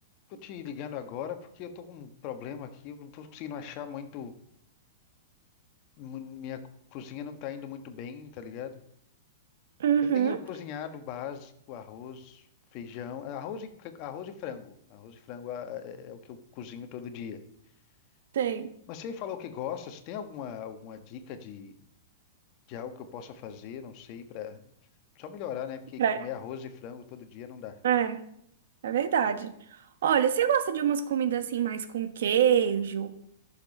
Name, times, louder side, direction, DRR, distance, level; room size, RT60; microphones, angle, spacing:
voice 1, 0.3-4.3 6.0-6.6 6.9-8.8 10.0-12.5 12.7-17.4 18.9-21.7 22.7-24.6 25.1-27.8, left 8 dB, 35° left, 8 dB, 1.3 m, -39 dB
voice 2, 9.8-10.4 18.3-18.7 26.0-26.2 27.8-28.2 28.8-33.1, right 8 dB, 70° right, 10 dB, 1.2 m, -26 dB
13.5 x 6.8 x 5.4 m, 0.73 s
hypercardioid pair, 155°, 0 cm